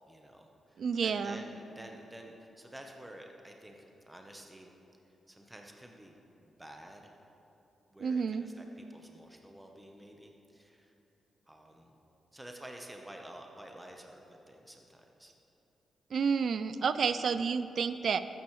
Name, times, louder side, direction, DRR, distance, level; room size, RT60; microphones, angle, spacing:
voice 1, 0.1-4.7 5.3-7.1 7.9-10.9 11.5-11.9 12.3-15.3, right 1 dB, 10° right, 2 dB, 0.9 m, -50 dB
voice 2, 0.8-1.4 8.0-8.5 16.1-18.2, right 6 dB, 65° right, 13 dB, 0.4 m, -30 dB
13.5 x 9.1 x 3.2 m, 3.0 s
cardioid pair, 75°, 0 cm